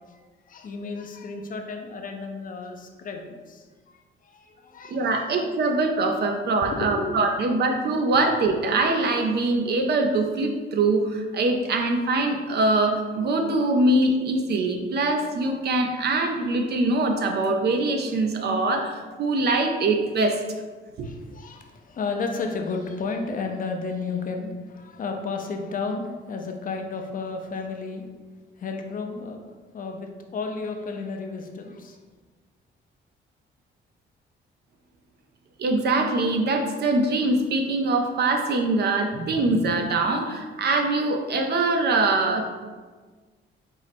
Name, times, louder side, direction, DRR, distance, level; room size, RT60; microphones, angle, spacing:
voice 1, 0.0-5.4 6.7-7.5 21.0-28.1 28.6-32.0, left 4 dB, 45° left, 4 dB, 0.5 m, -33 dB
voice 2, 4.9-20.4 21.0-21.1 35.6-42.5, right 2 dB, 55° right, 4 dB, 0.6 m, -23 dB
4.6 x 2.0 x 4.2 m, 1.4 s
cardioid pair, 90°, 20 cm